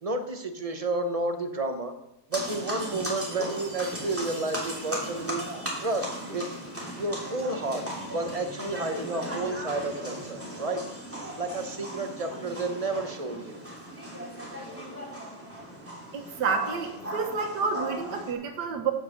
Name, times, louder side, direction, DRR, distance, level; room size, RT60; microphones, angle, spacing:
voice 1, 0.0-1.9 2.3-5.4 5.8-6.5 7.0-7.8 8.1-10.8 11.4-13.6, right 2 dB, 30° right, 6 dB, 0.8 m, -31 dB
sound 1, 2.3-18.3, equal, 5° right, 2.9 m, -37 dB
voice 2, 16.1-18.9, right 5 dB, 80° right, 3 dB, 1.9 m, -29 dB
9.7 x 8.0 x 6.5 m, 0.87 s
omnidirectional pair, 1.8 m